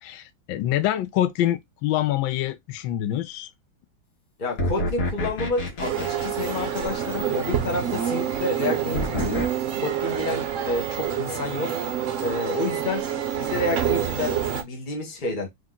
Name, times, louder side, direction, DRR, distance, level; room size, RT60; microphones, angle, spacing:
voice 1, 0.0-3.5, left 13 dB, 75° left, 1.3 m, -25 dB
voice 2, 4.4-9.5 9.8-11.8 12.2-13.1 13.3-15.5, left 2 dB, 35° left, 0.9 m, -29 dB
sound 1, 4.6-7.4 8.9-9.5, left 1 dB, 55° left, 1.6 m, -29 dB
sound 2, 5.8-14.6, right 9 dB, 65° right, 0.8 m, -27 dB
3.5 x 3.1 x 3.7 m
omnidirectional pair, 2.2 m